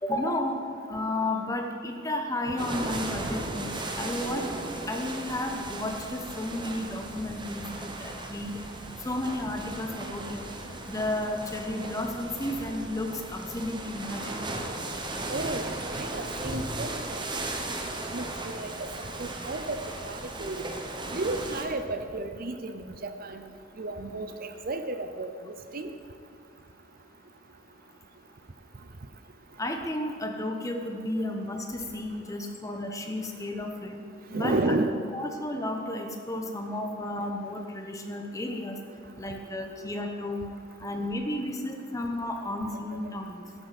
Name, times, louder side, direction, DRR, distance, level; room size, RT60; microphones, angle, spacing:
voice 1, 0.0-0.6 0.9-4.5 4.9-8.6 9.0-10.5 10.9-14.5 29.6-34.0 34.3-34.7 35.1-38.8 39.2-40.5 40.8-43.4, left 1 dB, 15° left, 3 dB, 1.1 m, -32 dB
sound 1, 2.6-21.7, right 2 dB, 25° right, 1.0 m, -36 dB
voice 2, 15.3-17.4 18.1-18.7 19.0-20.6 21.1-23.4 23.8-25.3 25.7-25.9 34.3-34.9, right 2 dB, 45° right, 8 dB, 0.7 m, -32 dB
14.0 x 11.5 x 4.3 m, 2.3 s
head